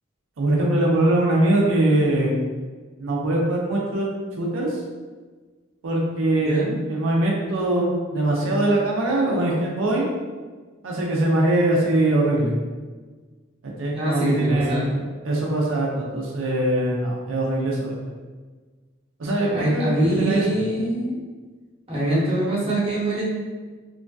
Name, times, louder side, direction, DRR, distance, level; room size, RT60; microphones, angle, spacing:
voice 1, 0.4-2.3 3.0-4.1 4.4-4.8 5.8-6.6 6.9-10.1 10.8-12.5 13.6-14.9 15.2-17.9 19.2-20.5, right 1 dB, 85° right, -3 dB, 0.5 m, -22 dB
voice 2, 13.9-15.0 19.5-21.2 21.9-23.2, right 1 dB, 30° right, -7 dB, 0.8 m, -23 dB
3.0 x 2.6 x 2.2 m, 1.4 s
head